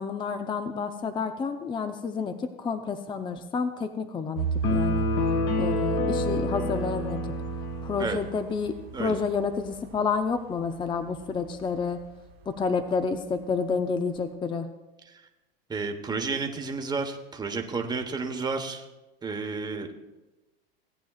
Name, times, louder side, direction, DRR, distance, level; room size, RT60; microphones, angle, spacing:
voice 1, 0.0-5.1 5.6-7.2 7.8-12.0 12.5-14.7, left 5 dB, 15° left, 8 dB, 0.5 m, -29 dB
sound 1, 4.3-13.7 14.1-14.2, right 8 dB, 90° right, 1.0 m, -35 dB
sound 2, 4.6-8.2, left 4 dB, 50° left, 1.6 m, -29 dB
voice 2, 15.7-18.8 19.2-19.9, right 4 dB, 15° right, 4 dB, 1.2 m, -31 dB
17.5 x 9.1 x 2.4 m, 1.1 s
hypercardioid pair, 100°, 29 cm